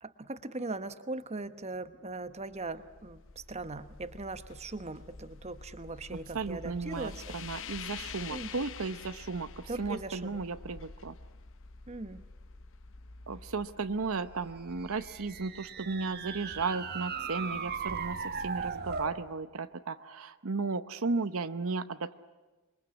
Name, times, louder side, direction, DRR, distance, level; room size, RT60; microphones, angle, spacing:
voice 1, 0.0-7.4 8.3-8.5 9.7-10.4 11.9-12.2, right 2 dB, 30° right, 11 dB, 1.1 m, -40 dB
sound 1, 2.3-16.4, left 5 dB, 60° left, 0.9 m, -48 dB
voice 2, 6.3-11.1 13.3-22.2, right 4 dB, 65° right, 11 dB, 0.8 m, -35 dB
sound 2, 14.8-19.2, right 5 dB, 45° right, 1.5 m, -37 dB
27.0 x 22.5 x 9.7 m, 1.2 s
head